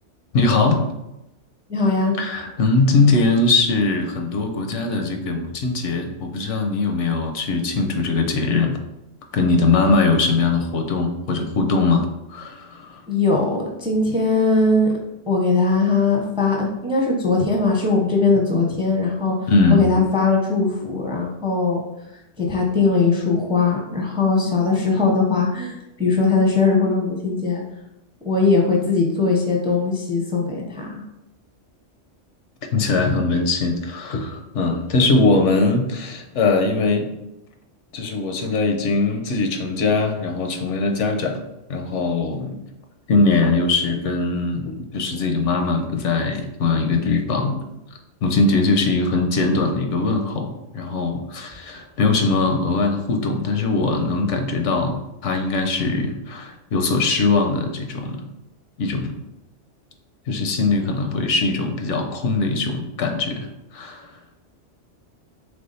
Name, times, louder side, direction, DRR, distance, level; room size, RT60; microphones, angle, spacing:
voice 1, 0.3-0.8 2.2-8.8 9.3-13.0 19.5-19.8 32.7-37.1 37.9-41.4 41.7-42.6 43.1-47.6 48.2-58.2 58.8-59.1 60.3-64.1, left 3 dB, 80° left, 4 dB, 1.0 m, -21 dB
voice 2, 1.7-2.2 13.1-14.9 15.3-21.8 22.4-25.7 26.0-27.6 28.2-31.0, left 3 dB, 5° right, -1 dB, 0.6 m, -20 dB
3.5 x 3.4 x 4.0 m, 0.90 s
omnidirectional pair, 1.2 m